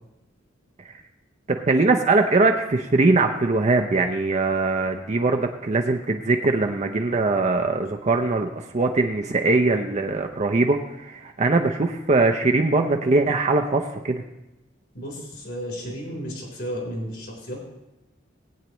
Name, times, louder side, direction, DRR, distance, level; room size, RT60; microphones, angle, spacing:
voice 1, 1.5-14.2, right 3 dB, 35° right, 3 dB, 0.6 m, -21 dB
voice 2, 14.9-17.6, equal, 60° left, -1 dB, 3.8 m, -33 dB
19.0 x 8.8 x 3.0 m, 0.98 s
head